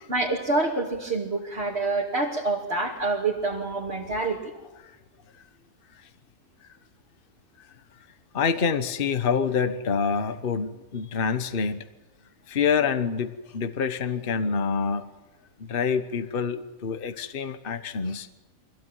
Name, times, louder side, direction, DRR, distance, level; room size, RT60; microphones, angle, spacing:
voice 1, 0.1-4.5, right 2 dB, 40° right, 3.1 m, -27 dB
voice 2, 8.3-11.8 12.5-15.1 15.6-18.3, left 6 dB, 40° left, 1.2 m, -26 dB
24.5 x 16.5 x 9.2 m
omnidirectional pair, 1.6 m